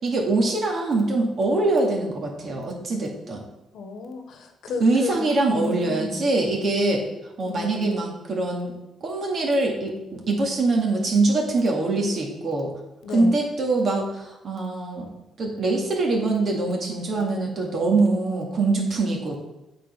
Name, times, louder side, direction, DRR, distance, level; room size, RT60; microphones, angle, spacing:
voice 1, 0.0-3.4 4.8-7.0 7.4-8.7 9.0-12.7 13.1-15.1 15.4-19.4, right 2 dB, 50° right, 0 dB, 2.1 m, -23 dB
voice 2, 3.7-6.2 7.4-7.7 13.0-13.3, left 3 dB, 75° left, 5 dB, 1.2 m, -32 dB
8.3 x 4.4 x 5.5 m, 0.97 s
cardioid pair, 90°, 0 cm